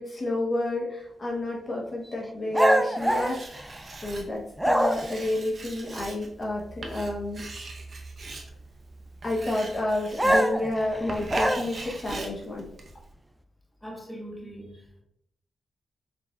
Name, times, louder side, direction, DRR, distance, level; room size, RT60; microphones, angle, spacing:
voice 1, 0.0-3.7 4.0-7.4 9.2-12.7, left 1 dB, 40° left, -3 dB, 0.8 m, -30 dB
sound 1, 2.5-4.1 4.6-5.3 10.2-12.0, right 1 dB, 5° right, 0.3 m, -24 dB
Writing, 3.0-13.1, right 3 dB, 50° right, 0.7 m, -41 dB
voice 2, 13.8-15.0, equal, 10° left, -1 dB, 1.1 m, -41 dB
4.3 x 4.1 x 2.3 m, 0.74 s
cardioid pair, 80°, 0 cm